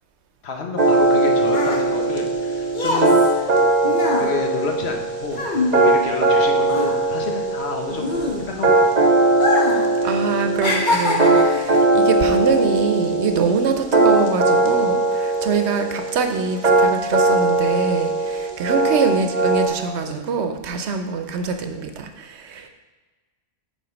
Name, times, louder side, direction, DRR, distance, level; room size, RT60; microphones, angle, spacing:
voice 1, 0.4-3.5 3.8-5.4 5.7-8.9, left 4 dB, 75° left, 2 dB, 1.2 m, -29 dB
sound 1, 0.8-19.7, right 2 dB, 40° right, 1.1 m, -19 dB
sound 2, 1.0-6.4 6.6-8.8 9.3-9.9 10.2-11.6 12.3-12.5, left 2 dB, 50° left, 1.1 m, -24 dB
voice 2, 10.0-22.7, right 5 dB, 90° right, 6 dB, 1.0 m, -24 dB
7.7 x 4.0 x 5.1 m, 1.3 s
omnidirectional pair, 1.1 m